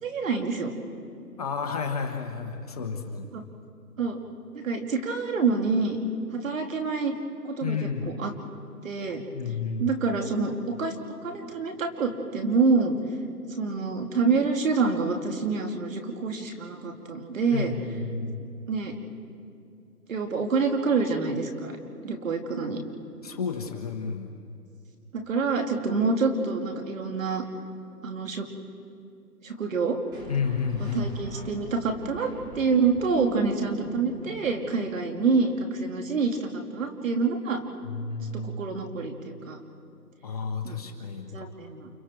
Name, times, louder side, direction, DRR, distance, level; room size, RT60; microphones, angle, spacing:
voice 1, 0.0-0.7 3.3-3.4 4.0-4.2 4.5-6.0 6.3-7.1 7.4-7.8 8.2-8.3 8.8-9.2 9.8-10.9 11.2-13.0 13.6-17.7 18.7-18.9 20.1-21.8 22.0-22.8 25.1-27.4 28.0-28.5 29.4-30.0 30.9-32.3 32.5-37.6 38.4-39.6 40.6-40.8 41.3-41.9, right 4 dB, 50° right, 4 dB, 2.8 m, -27 dB
voice 2, 1.4-3.3 7.6-8.1 9.3-9.9 17.5-18.5 23.2-24.3 30.3-31.2 37.8-38.7 40.2-41.5, left 5 dB, 25° left, 4 dB, 1.1 m, -31 dB
sound 1, 30.1-35.3, equal, 10° right, 1.7 m, -43 dB
29.5 x 28.0 x 4.5 m, 2.5 s
hypercardioid pair, 155°, 49 cm